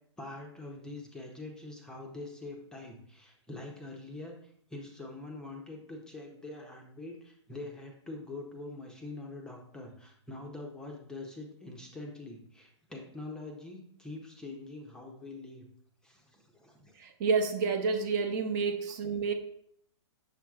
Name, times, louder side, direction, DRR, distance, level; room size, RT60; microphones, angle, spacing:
voice 1, 0.2-15.7 16.0-16.9, left 2 dB, 5° left, 0 dB, 0.6 m, -44 dB
voice 2, 17.0-19.3, right 5 dB, 40° right, 6 dB, 0.6 m, -29 dB
6.8 x 5.9 x 2.3 m, 0.67 s
hypercardioid pair, 150°, 15 cm